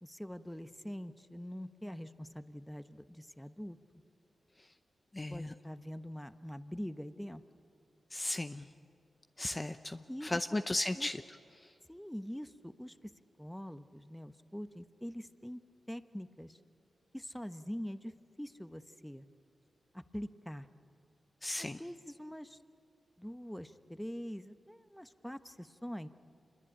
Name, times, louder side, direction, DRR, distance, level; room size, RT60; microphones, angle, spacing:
voice 1, 0.0-3.8 5.3-7.4 10.1-10.6 10.9-11.1 11.9-13.1 13.4-15.6 15.9-16.6 17.1-18.1 18.4-19.3 19.9-20.7 21.6-22.6 23.2-26.1, equal, 5° left, 10 dB, 1.1 m, -44 dB
voice 2, 5.1-5.5 8.1-8.7 9.4-11.2 21.4-21.8, left 1 dB, 25° left, 8 dB, 0.7 m, -35 dB
26.5 x 21.5 x 8.9 m, 2.5 s
cardioid pair, 45°, 0 cm